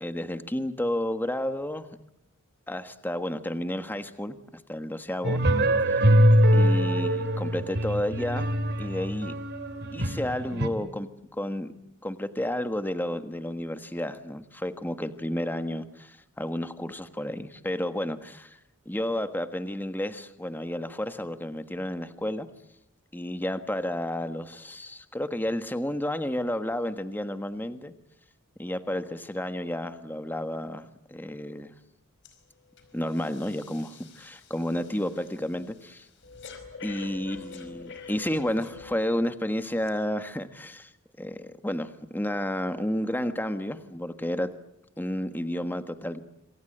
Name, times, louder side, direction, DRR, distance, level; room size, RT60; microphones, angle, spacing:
voice 1, 0.0-1.9 2.7-5.4 5.8-6.1 6.5-9.4 9.9-11.1 11.4-11.7 12.0-18.6 18.8-22.5 23.1-27.9 28.6-31.7 32.9-36.1 36.8-40.9 41.2-44.5 45.0-46.2, left 1 dB, 10° left, 9 dB, 1.4 m, -31 dB
sound 1, 5.2-10.7, equal, 50° right, 2.3 m, -23 dB
Breathing, 32.2-32.4 32.8-39.2 39.8-39.9, left 5 dB, 55° left, 5.0 m, -46 dB
27.5 x 24.5 x 7.9 m, 0.79 s
head